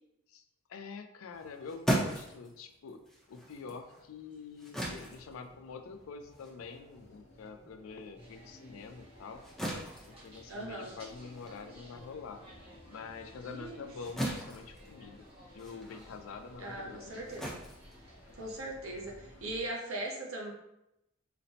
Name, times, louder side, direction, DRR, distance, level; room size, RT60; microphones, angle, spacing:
voice 1, 0.7-9.4 10.1-12.4 12.9-15.2 15.5-17.2, left 5 dB, 80° left, 8 dB, 0.4 m, -46 dB
sound 1, 1.3-8.1 8.5-18.7, right 1 dB, 5° left, 0.6 m, -39 dB
sound 2, 5.1-19.7, equal, 55° left, 0.7 m, -57 dB
sound 3, 8.1-18.5, equal, 30° right, 0.9 m, -58 dB
voice 2, 10.5-10.9 13.5-13.8 16.6-17.5 18.3-20.5, right 2 dB, 85° right, -1 dB, 0.8 m, -39 dB
4.0 x 2.1 x 2.7 m, 0.85 s
head